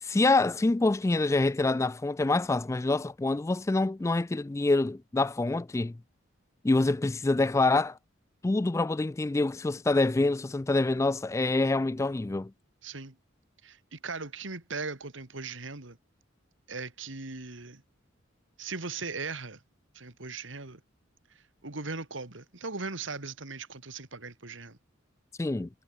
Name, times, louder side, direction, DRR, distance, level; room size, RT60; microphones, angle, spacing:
voice 1, 0.0-6.0 6.6-8.0 8.4-12.5 25.4-25.7, left 2 dB, 15° left, 0.3 m, -26 dB
voice 2, 12.8-13.2 13.6-16.0 16.7-17.8 18.6-19.6 19.9-20.8 21.3-24.8, right 4 dB, 70° right, 2.4 m, -39 dB
head